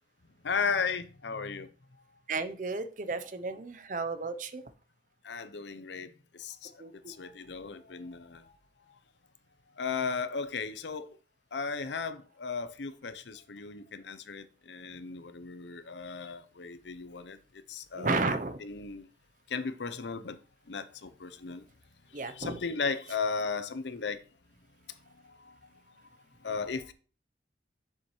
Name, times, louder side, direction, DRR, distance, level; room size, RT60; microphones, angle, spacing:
voice 1, 0.4-1.7 5.2-6.1 6.4-6.7 7.1-8.4 9.8-11.1 11.5-17.4 17.7-19.1 19.5-20.4 20.7-21.6 22.1-24.2 25.3-25.5 26.4-26.9, left 5 dB, 80° left, 0.7 m, -35 dB
voice 2, 2.3-4.6 6.8-7.1 18.0-18.6 22.1-22.5, right 3 dB, 45° right, 0.7 m, -33 dB
7.2 x 6.8 x 3.1 m
head